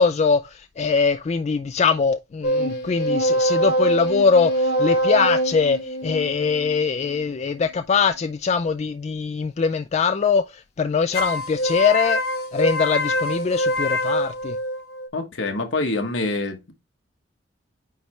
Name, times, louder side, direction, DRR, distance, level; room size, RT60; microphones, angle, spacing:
voice 1, 0.0-12.2 12.5-14.6, left 5 dB, 35° left, 0.3 m, -22 dB
sound 1, 2.4-7.8 11.1-15.1, equal, 60° left, 1.2 m, -24 dB
voice 2, 15.1-16.7, left 2 dB, 80° left, 1.4 m, -26 dB
9.2 x 3.3 x 3.1 m
head